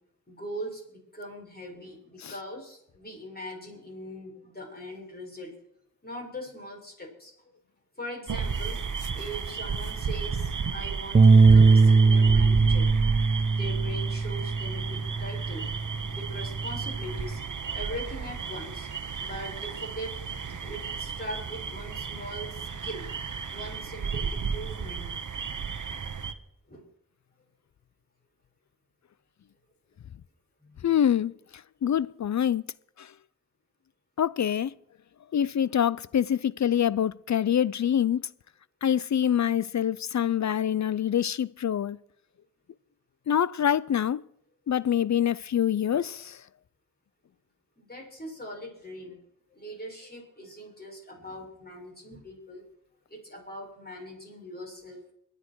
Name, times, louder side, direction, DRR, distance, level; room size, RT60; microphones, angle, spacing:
voice 1, 0.3-5.5 6.0-7.3 8.0-8.8 9.1-12.9 13.5-15.6 16.1-17.4 17.7-18.9 19.2-20.2 20.6-23.0 23.5-25.1 26.7-26.8 30.6-30.8 47.8-49.2 49.5-52.6 53.1-55.0, equal, 30° left, 7.1 m, -41 dB
sound 1, 8.3-26.3, right 6 dB, 70° right, 1.1 m, -33 dB
sound 2, 11.1-17.4, right 4 dB, 25° right, 0.5 m, -21 dB
voice 2, 30.8-31.3 31.8-32.6 34.2-34.7 35.3-38.2 38.8-42.0 43.3-44.2 44.7-46.4, left 9 dB, 60° left, 0.5 m, -25 dB
23.5 x 10.0 x 4.6 m
cardioid pair, 40°, 32 cm